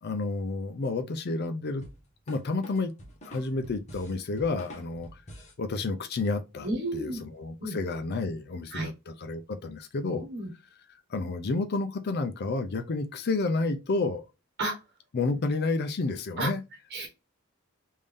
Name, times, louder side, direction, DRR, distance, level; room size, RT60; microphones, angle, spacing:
voice 1, 0.0-1.8 2.3-2.9 3.2-5.1 5.6-10.3 11.1-14.2 15.1-16.6, left 3 dB, 55° left, 0.5 m, -30 dB
sound 1, 1.8-5.6, equal, 35° left, 1.2 m, -47 dB
voice 2, 6.6-7.2 7.6-7.8 8.7-8.9 10.2-10.5 14.6-14.8 16.4-16.5 16.9-17.1, right 1 dB, 55° right, 1.1 m, -31 dB
3.6 x 2.6 x 3.3 m
head